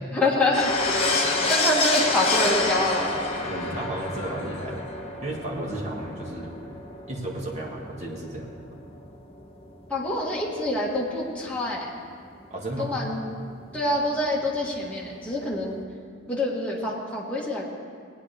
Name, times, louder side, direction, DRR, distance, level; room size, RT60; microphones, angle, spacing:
voice 1, 0.1-0.7 1.0-3.1 9.9-11.9 12.8-13.2 13.7-15.8 16.3-17.6, left 1 dB, 5° left, -5 dB, 1.8 m, -26 dB
sound 1, 0.5-10.3 10.5-10.6 10.8-10.9 13.4-13.5 13.7-13.8 14.0-15.8, left 3 dB, 30° left, 1.3 m, -28 dB
voice 2, 3.4-4.8 5.2-6.5 7.1-8.5 12.5-12.9, right 1 dB, 35° right, -3 dB, 1.8 m, -33 dB
19.0 x 9.5 x 3.5 m, 2.2 s
head